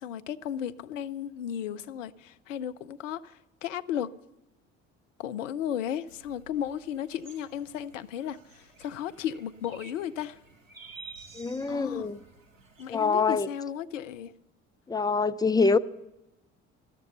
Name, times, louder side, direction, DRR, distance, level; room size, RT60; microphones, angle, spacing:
voice 1, 0.0-4.1 5.2-10.4 11.7-12.1 12.8-14.3, left 9 dB, 75° left, 0.6 m, -35 dB
sound 1, 6.1-13.2, right 4 dB, 85° right, 1.4 m, -52 dB
voice 2, 11.3-12.2 12.9-13.5 14.9-15.8, left 4 dB, 10° left, 0.6 m, -25 dB
13.5 x 12.5 x 6.8 m
figure-of-eight pair, 55°, 38 cm